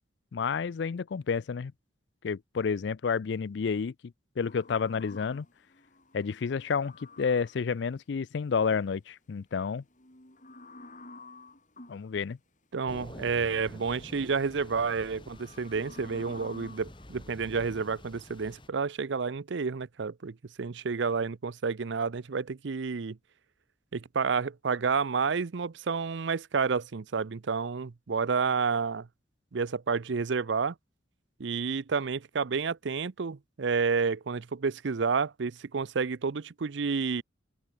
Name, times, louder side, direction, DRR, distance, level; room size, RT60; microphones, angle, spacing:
voice 1, 0.3-1.7 2.2-5.5 6.1-9.8 11.9-12.4, left 5 dB, 60° left, 0.4 m, -30 dB
sound 1, 4.4-7.7 9.8-12.1 13.4-14.0 14.5-17.9, left 2 dB, 40° left, 5.2 m, -51 dB
voice 2, 12.7-23.2 23.9-29.1 29.5-30.7 31.4-37.2, right 5 dB, 65° right, 0.6 m, -30 dB
Thunder / Rain, 12.9-18.7, left 1 dB, 25° left, 2.1 m, -48 dB
open air
head